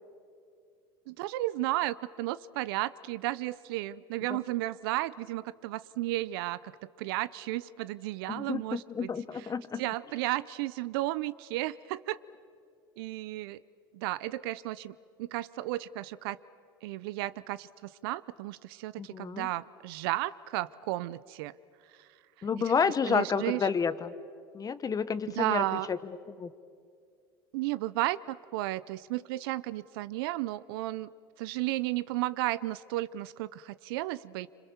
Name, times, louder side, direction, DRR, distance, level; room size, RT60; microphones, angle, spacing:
voice 1, 1.1-6.7 7.0-9.5 9.8-12.2 13.0-13.6 13.9-16.4 16.8-21.5 22.6-23.7 25.3-25.9 27.5-31.1 31.4-34.5, right 16 dB, 75° right, 18 dB, 0.6 m, -33 dB
voice 2, 8.3-9.8 19.0-19.5 22.4-24.1 24.5-26.0 26.4-26.5, left 6 dB, 30° left, 14 dB, 1.2 m, -30 dB
27.0 x 26.0 x 7.1 m, 2.3 s
hypercardioid pair, 85°, 12 cm